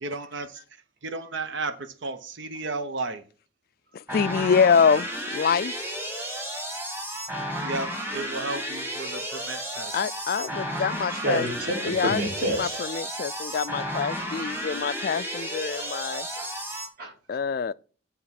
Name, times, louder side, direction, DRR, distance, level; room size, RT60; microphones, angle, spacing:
voice 1, 0.0-0.6 1.0-3.2 7.6-10.0, right 3 dB, 75° right, 0.9 m, -33 dB
voice 2, 3.9-5.7 9.9-11.4 11.8-12.2 12.5-16.3 17.3-17.7, left 6 dB, 50° left, 0.3 m, -25 dB
sound 1, 4.1-16.9, equal, 10° right, 1.5 m, -33 dB
voice 3, 11.1-12.8 15.8-15.9 16.3-16.5 17.0-17.4, equal, 50° right, 2.7 m, -29 dB
9.7 x 3.5 x 5.8 m
head